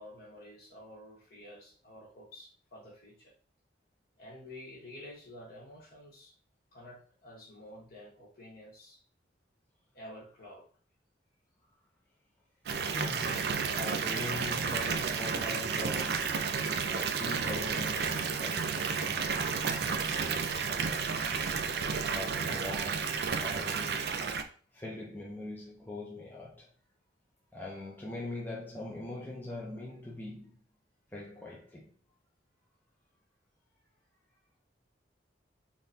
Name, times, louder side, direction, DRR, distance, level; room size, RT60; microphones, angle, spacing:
voice 1, 0.0-3.3 4.2-6.3 6.7-9.0 9.9-10.7, left 1 dB, 55° left, 1.4 m, -50 dB
Water tap faucet / Bathtub (filling or washing) / Fill (with liquid), 12.7-24.4, right 5 dB, 60° right, 0.4 m, -32 dB
voice 2, 12.9-16.4 16.9-21.0 22.1-24.1 24.7-26.7 27.5-30.6 31.1-31.9, left 2 dB, 10° left, 0.6 m, -42 dB
3.7 x 3.4 x 2.6 m
head